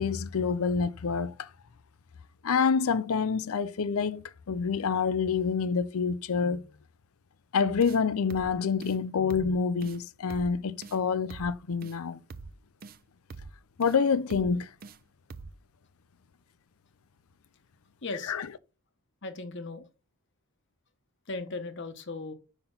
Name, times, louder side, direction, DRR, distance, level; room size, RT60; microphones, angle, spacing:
voice 1, 0.0-1.5 2.4-6.7 7.5-12.2 13.8-14.7 18.3-18.4, left 5 dB, 75° left, 0.5 m, -27 dB
sound 1, 7.8-8.0 8.3-8.5 8.8-9.0 9.3-9.5 9.8-10.0 10.3-10.5 10.8-11.0 11.3-11.5 11.8-12.0 12.3-12.5 12.8-13.0 13.3-13.5 13.8-14.0 14.3-14.5 14.8-15.0 15.3-15.5, right 4 dB, 40° right, 0.4 m, -44 dB
voice 2, 18.0-18.3 19.2-19.9 21.3-22.3, left 3 dB, 55° left, 1.1 m, -37 dB
5.9 x 5.7 x 3.9 m
head